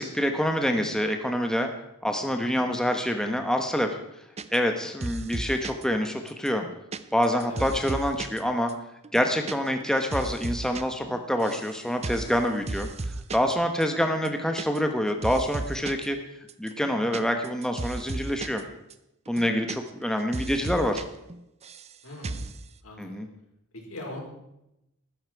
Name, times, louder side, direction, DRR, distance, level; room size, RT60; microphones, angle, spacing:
voice 1, 0.0-1.7 2.0-4.0 4.5-6.6 7.1-8.7 9.1-12.9 13.3-16.2 16.6-18.6 19.3-21.0 23.0-23.3, equal, 5° left, 5 dB, 1.1 m, -26 dB
voice 2, 2.3-2.6 7.4-7.7 19.3-19.5 22.0-22.5 22.8-23.2 23.7-24.2, left 1 dB, 80° left, 0 dB, 4.9 m, -41 dB
sound 1, 4.4-4.8 5.0-5.8 6.3-8.4 8.7-8.8 9.0-9.6 9.8-10.8 11.1-11.7 12.0-12.3 12.7-13.5 13.8-13.9 14.2-15.0 15.2-16.1 16.5-18.6 18.9-19.0 19.3-20.1 20.3-21.0 21.3-21.9 22.2-22.6, right 2 dB, 30° right, 0.7 m, -34 dB
14.5 x 13.0 x 4.7 m, 0.85 s
head